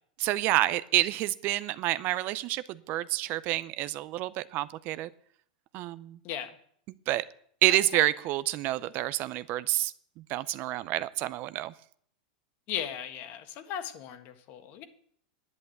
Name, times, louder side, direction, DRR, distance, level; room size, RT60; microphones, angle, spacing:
voice 1, 0.2-5.1 5.7-6.2 7.1-7.2 7.6-9.9 10.3-11.7, right 15 dB, 45° right, 16 dB, 0.6 m, -28 dB
voice 2, 6.2-6.6 7.7-8.0 12.7-14.8, left 9 dB, 45° left, 8 dB, 1.6 m, -37 dB
10.5 x 8.7 x 7.9 m, 0.63 s
hypercardioid pair, 120°, 5 cm